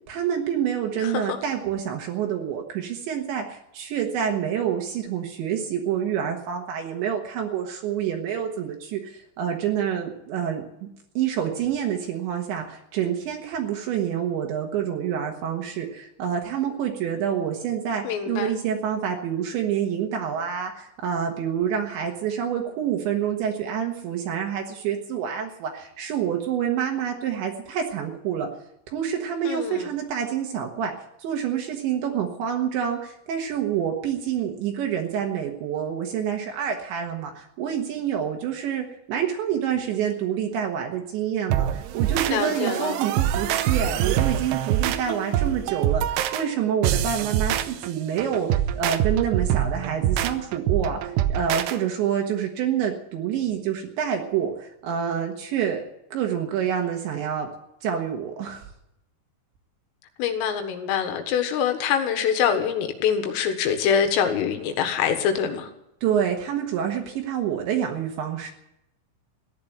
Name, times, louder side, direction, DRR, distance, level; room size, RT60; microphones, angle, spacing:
voice 1, 0.1-10.7 11.2-28.5 28.9-30.9 31.2-48.5 48.8-55.8 56.1-57.5 57.8-58.7 66.0-68.5, right 8 dB, 70° right, 3.5 m, -27 dB
voice 2, 1.0-1.4 18.0-18.5 29.5-29.9 42.3-43.0 60.2-65.7, left 7 dB, 80° left, 4.1 m, -25 dB
sound 1, 41.5-51.8, right 11 dB, 85° right, 2.4 m, -25 dB
15.0 x 10.5 x 8.7 m
omnidirectional pair, 5.8 m